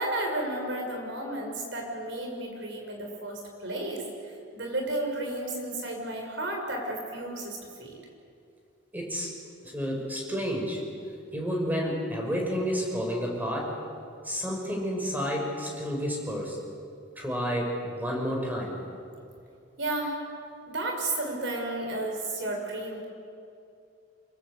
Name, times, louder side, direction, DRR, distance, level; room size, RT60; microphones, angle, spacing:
voice 1, 0.0-8.0 19.8-20.2 20.7-23.0, right 1 dB, 60° right, 2 dB, 6.2 m, -33 dB
voice 2, 8.9-9.3 9.6-10.8 11.3-13.8 14.2-16.6 17.2-18.8, equal, 10° right, 0 dB, 5.6 m, -30 dB
26.5 x 22.5 x 8.5 m, 2.5 s
head